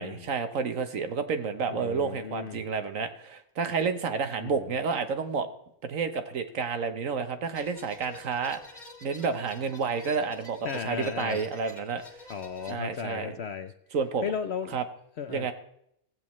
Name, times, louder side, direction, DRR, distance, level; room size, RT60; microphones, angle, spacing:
voice 1, 0.0-5.5 5.8-12.0 12.7-13.4 13.9-14.2 14.7-14.8 15.3-15.5, right 5 dB, 60° right, 9 dB, 1.3 m, -30 dB
voice 2, 1.7-2.6 4.4-4.7 10.6-11.4 12.3-13.7 14.2-14.8 15.2-15.5, left 7 dB, 60° left, 9 dB, 0.7 m, -35 dB
sound 1, 7.5-12.7, left 2 dB, 30° left, 1.9 m, -48 dB
16.0 x 15.5 x 3.1 m, 0.74 s
omnidirectional pair, 1.6 m